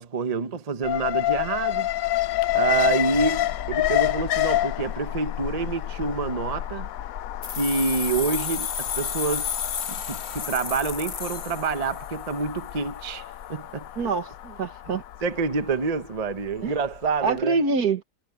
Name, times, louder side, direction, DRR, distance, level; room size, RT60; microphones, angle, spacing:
voice 1, 0.0-1.9 2.5-6.9 7.6-9.5 9.9-13.2 13.5-13.9 15.2-17.6, right 4 dB, 30° right, 0.8 m, -27 dB
Alarm, 0.8-16.9 17.3-17.4, left 14 dB, 65° left, 1.0 m, -29 dB
sound 1, 7.4-12.2, left 7 dB, 45° left, 1.2 m, -32 dB
voice 2, 14.0-15.0 16.6-16.7 17.2-18.0, right 4 dB, 65° right, 2.1 m, -25 dB
omnidirectional pair, 1.8 m